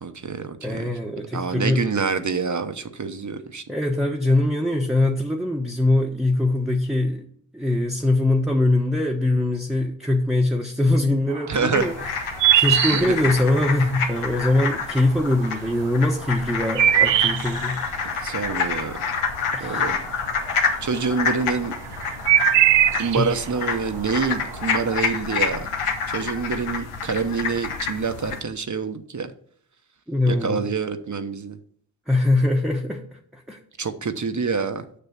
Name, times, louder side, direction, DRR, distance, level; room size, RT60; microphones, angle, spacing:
voice 1, 0.0-0.8 1.3-3.6 11.5-11.9 12.9-13.3 18.2-19.0 19.6-20.0 20.8-21.7 22.9-25.7 26.1-29.3 30.3-31.6 33.8-34.8, right 5 dB, 35° right, 9 dB, 0.9 m, -26 dB
voice 2, 0.6-1.9 3.7-7.2 7.5-11.9 12.5-17.8 19.5-20.0 23.1-23.3 30.1-30.6 32.1-33.6, left 2 dB, ahead, 0 dB, 1.1 m, -22 dB
sound 1, 11.3-13.9 14.3-15.0 15.4-20.5 20.8-25.1, right 11 dB, 60° right, 0.6 m, -21 dB
sound 2, 11.7-28.4, left 5 dB, 85° left, 1.1 m, -28 dB
6.8 x 6.0 x 5.9 m, 0.63 s
supercardioid pair, 40°, 49 cm